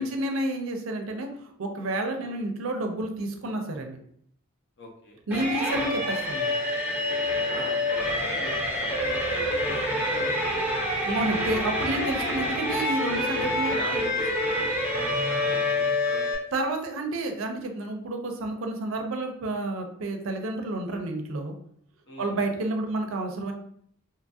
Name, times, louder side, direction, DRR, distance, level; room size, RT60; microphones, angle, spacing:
voice 1, 0.0-4.0 5.3-6.5 11.0-14.0 16.5-21.5 22.2-23.5, right 2 dB, 75° right, 4 dB, 0.5 m, -30 dB
voice 2, 4.8-5.2 7.5-10.8 13.7-16.4 22.1-22.4, left 1 dB, 60° left, -1 dB, 0.7 m, -42 dB
sound 1, 5.3-16.3, left 1 dB, 10° right, 0.7 m, -27 dB
2.8 x 2.3 x 2.6 m, 0.67 s
head